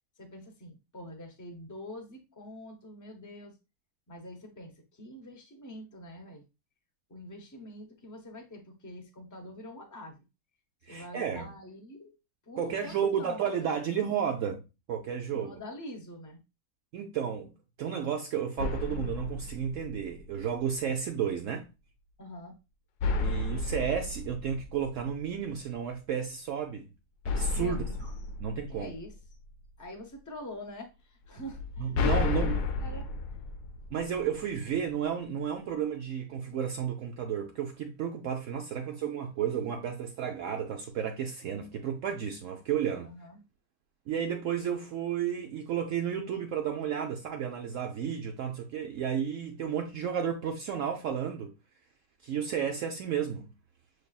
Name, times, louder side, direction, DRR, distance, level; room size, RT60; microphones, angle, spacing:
voice 1, 0.2-3.6 4.1-6.4 7.1-10.2 10.9-12.2 12.5-13.7 15.3-16.4 22.2-22.6 27.5-28.0 28.7-29.1 29.8-33.1 43.0-43.4, left 1 dB, 15° left, 0.6 m, -45 dB
voice 2, 10.9-11.5 12.6-15.5 16.9-17.5 17.8-21.7 23.2-26.9 27.2-28.1 28.4-28.9 31.8-32.7 33.9-43.1 44.1-51.5 52.2-53.5, right 8 dB, 65° right, 0.8 m, -32 dB
sound 1, 18.6-20.5 23.0-25.4 27.2-29.5 31.5-34.5, left 4 dB, 85° left, 1.2 m, -32 dB
6.4 x 3.3 x 2.3 m
omnidirectional pair, 1.6 m